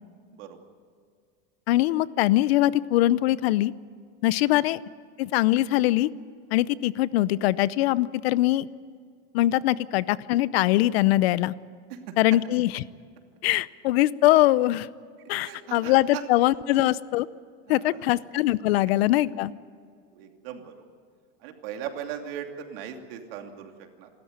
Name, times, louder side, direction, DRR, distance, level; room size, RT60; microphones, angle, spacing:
voice 1, 1.7-3.7 4.2-4.8 5.2-6.1 6.5-8.7 9.3-11.5 12.2-12.8 13.4-14.9 15.3-17.3 17.7-19.5, left 16 dB, 80° left, 19 dB, 0.7 m, -22 dB
voice 2, 15.4-16.2 17.7-18.2 20.1-20.8 21.4-24.1, right 9 dB, 70° right, 4 dB, 2.8 m, -39 dB
26.5 x 13.5 x 9.6 m, 2.1 s
supercardioid pair, 155°, 31 cm